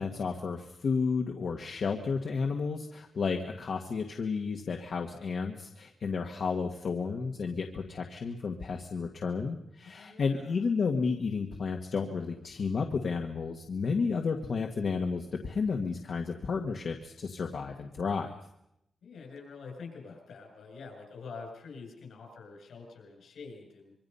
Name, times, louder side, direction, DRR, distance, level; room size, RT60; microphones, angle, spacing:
voice 1, 0.0-18.3, left 5 dB, 55° left, 3 dB, 1.7 m, -32 dB
voice 2, 9.8-10.5 19.0-23.9, left 4 dB, 75° left, 3 dB, 7.4 m, -46 dB
25.5 x 24.0 x 5.6 m, 0.80 s
wide cardioid pair, 160°, 0 cm